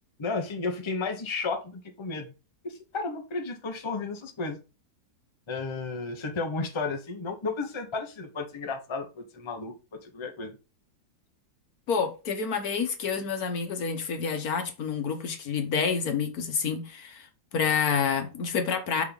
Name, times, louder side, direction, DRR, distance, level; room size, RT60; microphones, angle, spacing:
voice 1, 0.2-2.3 2.6-4.6 5.5-10.6, left 3 dB, 20° left, 0.8 m, -33 dB
voice 2, 11.9-17.3 17.5-19.0, left 6 dB, 65° left, 1.5 m, -28 dB
6.7 x 3.8 x 5.2 m
omnidirectional pair, 1.8 m